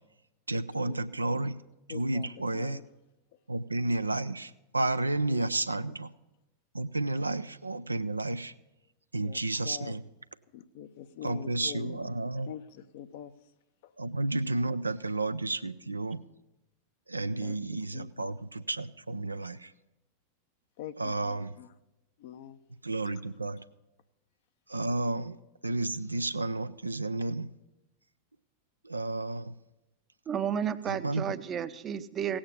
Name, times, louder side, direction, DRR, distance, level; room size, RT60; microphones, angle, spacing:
voice 1, 0.5-1.6 1.9-2.8 3.5-6.1 6.7-8.5 9.1-10.1 11.2-12.5 14.0-16.2 17.1-19.7 21.0-21.6 22.8-23.6 24.7-25.4 25.6-27.5 28.8-29.5 30.8-31.4, right 2 dB, 80° right, 12 dB, 0.4 m, -31 dB
voice 2, 1.9-2.8 5.3-5.4 5.9-6.0 9.2-10.0 10.5-12.2 12.5-13.3 13.8-13.9 17.4-17.6 17.9-18.3 20.8-21.7 22.2-22.6, left 10 dB, 50° left, 11 dB, 0.7 m, -45 dB
voice 3, 30.3-32.4, right 8 dB, 25° right, 13 dB, 0.6 m, -32 dB
16.5 x 8.7 x 5.4 m, 0.95 s
figure-of-eight pair, 90°, 0 cm